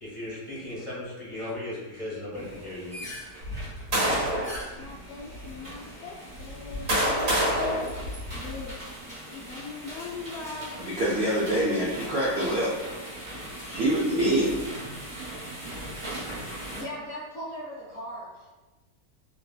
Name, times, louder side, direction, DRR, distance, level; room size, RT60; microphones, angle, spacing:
voice 1, 0.0-2.9, left 1 dB, 20° left, -9 dB, 1.1 m, -36 dB
sound 1, 2.3-16.8, right 1 dB, 25° right, 0.8 m, -40 dB
sound 2, 3.4-4.6 5.3-5.5 6.4-8.7, right 1 dB, 45° right, 1.3 m, -27 dB
Singing, 4.8-8.0 8.3-10.6, left 4 dB, 75° left, 0.6 m, -39 dB
voice 2, 10.8-12.7 13.3-13.4 13.7-14.8, right 1 dB, 85° right, -7 dB, 0.5 m, -25 dB
voice 3, 16.7-18.5, equal, 50° left, -8 dB, 0.8 m, -38 dB
3.0 x 2.6 x 2.3 m, 1.1 s
omnidirectional pair, 1.8 m